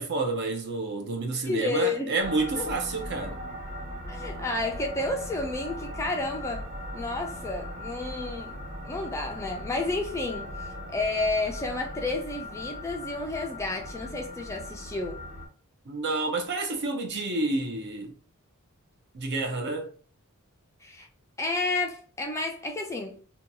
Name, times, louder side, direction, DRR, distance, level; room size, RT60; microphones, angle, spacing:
voice 1, 0.0-3.4 15.9-18.1 19.1-19.9, right 3 dB, 50° right, 0.6 m, -29 dB
voice 2, 1.5-2.2 2.6-2.7 4.1-6.7 6.9-8.6 8.8-15.2 20.8-21.1 21.4-23.2, left 2 dB, 15° left, 0.3 m, -31 dB
sound 1, 2.2-15.5, left 1 dB, 35° right, 1.0 m, -39 dB
2.6 x 2.2 x 2.7 m
head